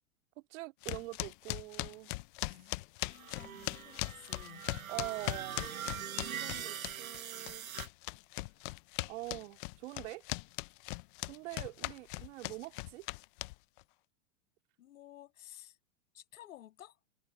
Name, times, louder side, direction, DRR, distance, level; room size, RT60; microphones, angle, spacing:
voice 1, 0.5-2.1 4.9-5.7 6.2-7.7 9.1-10.2 11.2-13.1, right 19 dB, 60° right, 2.3 m, -44 dB
sound 1, 0.8-7.2 7.5-13.8, left 23 dB, 40° left, 0.5 m, -39 dB
voice 2, 2.4-4.6 7.4-7.6 14.8-15.8 16.1-17.0, left 13 dB, 75° left, 6.6 m, -54 dB
sound 2, 3.1-7.9, right 9 dB, 90° right, 7.2 m, -43 dB
hypercardioid pair, 130°, 41 cm